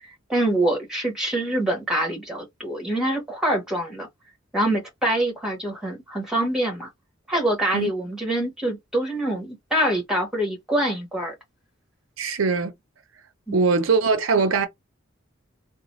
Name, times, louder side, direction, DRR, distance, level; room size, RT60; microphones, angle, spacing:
voice 1, 0.3-4.1 4.5-6.9 7.3-11.3 13.5-13.7, right 1 dB, 5° right, 1.3 m, -25 dB
voice 2, 12.2-12.7 13.5-14.7, right 4 dB, 75° right, 0.6 m, -21 dB
3.9 x 2.1 x 3.1 m
head